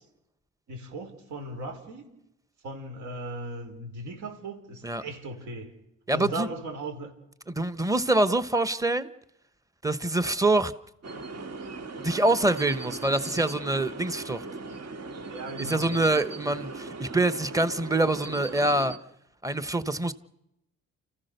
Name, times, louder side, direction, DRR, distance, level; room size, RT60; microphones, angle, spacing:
voice 1, 0.7-2.1 2.6-5.7 6.1-7.1 15.3-16.0 16.4-16.5, right 2 dB, 75° right, 4.9 m, -37 dB
voice 2, 6.1-6.5 7.5-9.1 9.8-10.7 12.0-14.4 15.6-18.9 19.4-20.1, right 2 dB, 10° right, 1.2 m, -25 dB
sound 1, 11.0-19.0, right 3 dB, 55° right, 2.2 m, -39 dB
29.5 x 15.0 x 6.8 m
cardioid pair, 90°, 30 cm